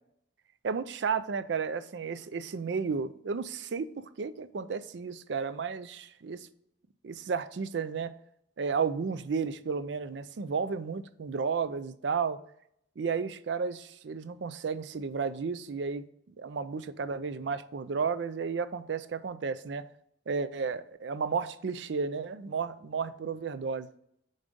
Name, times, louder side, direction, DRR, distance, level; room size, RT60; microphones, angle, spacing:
voice 1, 0.6-6.5 7.0-8.1 8.6-12.4 13.0-16.0 16.4-19.8 20.3-23.9, right 5 dB, 65° right, 0.4 m, -33 dB
7.1 x 4.0 x 5.1 m
head